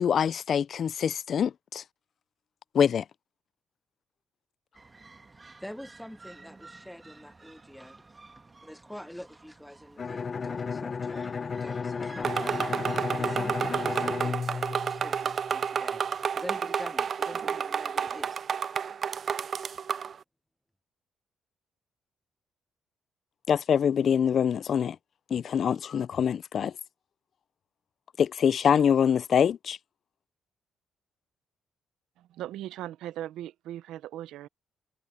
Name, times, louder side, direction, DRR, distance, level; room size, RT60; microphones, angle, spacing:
voice 1, 0.0-1.8 2.7-3.0 23.5-25.0 25.3-26.7 28.2-29.8, left 8 dB, 55° left, 0.4 m, -24 dB
sound 1, 4.7-13.9, right 3 dB, 25° right, 1.9 m, -53 dB
voice 2, 5.6-8.2 8.6-12.7 13.1-16.0 16.3-18.4 19.3-19.4, equal, 5° left, 0.9 m, -45 dB
Bowed string instrument, 10.0-15.6, left 5 dB, 40° left, 0.8 m, -33 dB
sound 2, 12.2-20.1, right 7 dB, 50° right, 0.4 m, -30 dB
voice 3, 32.2-34.5, right 13 dB, 85° right, 0.7 m, -39 dB
cardioid pair, 90°, 0 cm